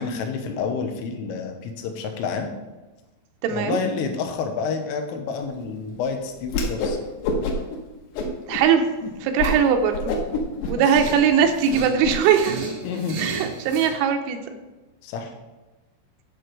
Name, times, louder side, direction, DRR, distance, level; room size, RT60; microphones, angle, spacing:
voice 1, 0.0-2.5 3.5-7.0 10.9-11.0 12.8-13.2 15.0-15.3, left 5 dB, 90° left, 5 dB, 3.6 m, -29 dB
voice 2, 3.4-3.8 8.5-8.9 9.2-10.1 10.7-12.6 13.2-14.4, right 7 dB, 80° right, 5 dB, 3.3 m, -20 dB
Whoosh swoosh swish, 6.5-7.0 7.2-7.8 8.1-8.6 9.0-9.1 9.4-9.6 9.9-12.1, left 3 dB, 70° left, 3.0 m, -26 dB
sound 1, 10.9-14.0, right 4 dB, 65° right, 1.8 m, -34 dB
11.0 x 6.8 x 4.7 m, 1.1 s
omnidirectional pair, 5.7 m